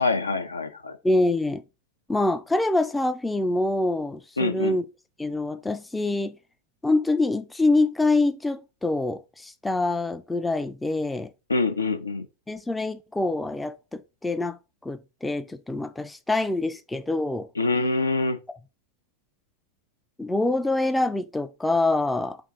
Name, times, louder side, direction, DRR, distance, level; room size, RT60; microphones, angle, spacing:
voice 1, 0.0-1.0 4.4-4.8 11.5-12.3 17.6-18.4, left 3 dB, 80° left, 0.4 m, -25 dB
voice 2, 1.0-1.6 2.1-4.8 5.2-6.4 6.8-11.3 12.5-17.5 20.2-22.4, left 2 dB, 5° left, 0.3 m, -25 dB
4.5 x 2.4 x 3.7 m
figure-of-eight pair, 90°, 0 cm